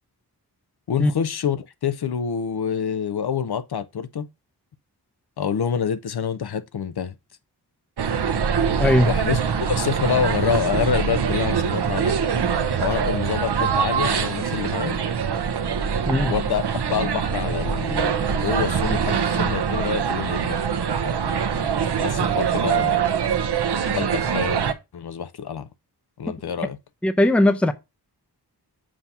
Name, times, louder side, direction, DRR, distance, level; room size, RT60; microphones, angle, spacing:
voice 1, 0.9-4.3 5.4-7.1 9.1-12.2 12.8-15.0 16.3-20.6 22.0-23.1 23.9-24.6 24.9-25.7 26.2-26.8, left 7 dB, 70° left, 0.7 m, -27 dB
sound 1, 8.0-24.7, right 7 dB, 75° right, 0.8 m, -23 dB
voice 2, 8.8-9.1 16.1-16.3 27.0-27.7, left 1 dB, 5° left, 0.5 m, -18 dB
7.4 x 2.8 x 5.8 m
wide cardioid pair, 115°, 40 cm